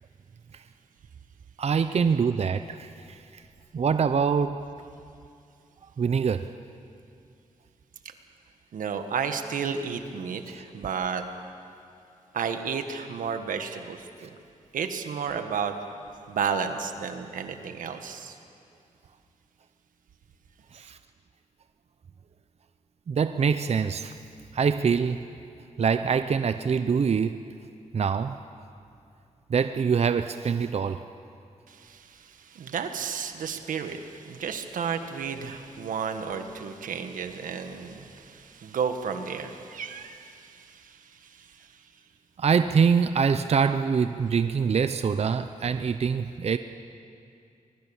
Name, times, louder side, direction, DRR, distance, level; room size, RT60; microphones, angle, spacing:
voice 1, 1.6-3.4 3.7-4.6 6.0-6.5 20.7-21.0 23.1-24.1 24.5-25.2 25.8-27.4 27.9-28.4 29.5-31.0 42.4-46.6, right 6 dB, 50° right, 10 dB, 0.7 m, -24 dB
voice 2, 8.7-11.2 12.3-14.3 14.7-15.7 16.3-18.4 31.7-41.0 41.4-41.7, right 6 dB, 90° right, 7 dB, 1.6 m, -32 dB
25.0 x 21.0 x 7.2 m, 2.5 s
cardioid pair, 75°, 13 cm